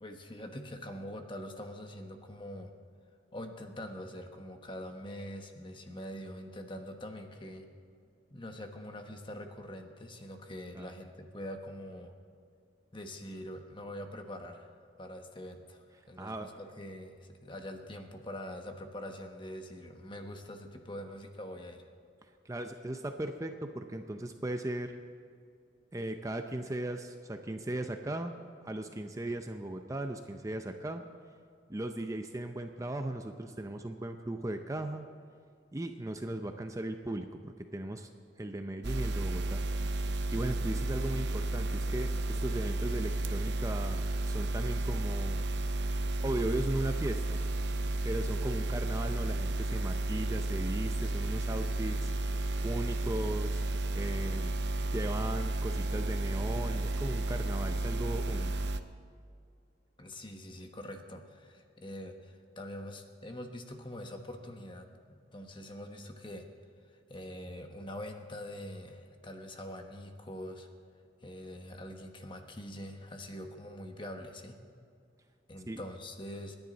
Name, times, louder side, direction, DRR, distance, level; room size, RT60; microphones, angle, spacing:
voice 1, 0.0-2.7 3.3-7.6 8.3-12.1 12.9-14.7 15.0-21.9 60.0-64.9 65.3-66.4 67.1-70.7 71.2-74.5 75.5-76.6, left 1 dB, 25° left, 5 dB, 1.2 m, -44 dB
voice 2, 16.2-16.5 22.4-24.9 25.9-28.3 28.6-31.0 31.7-35.1 35.7-38.1 38.4-39.6 40.0-45.4 46.2-47.4 48.0-52.1 52.6-53.6 53.9-54.5 54.9-58.5 75.7-75.8, right 1 dB, 20° right, 6 dB, 0.6 m, -37 dB
sound 1, 38.8-58.8, right 2 dB, 65° right, 0.7 m, -32 dB
27.5 x 10.5 x 4.0 m, 2.2 s
head